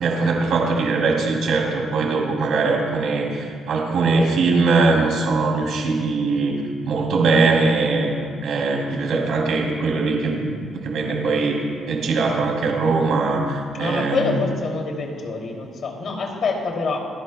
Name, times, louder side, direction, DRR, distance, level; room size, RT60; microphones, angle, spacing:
voice 1, 0.0-6.6 6.8-8.1 8.4-14.3, right 3 dB, 75° right, 0 dB, 2.7 m, -21 dB
voice 2, 13.7-17.0, left 4 dB, 60° left, 1 dB, 2.5 m, -26 dB
28.5 x 11.0 x 2.2 m, 2.1 s
cardioid pair, 90°, 0 cm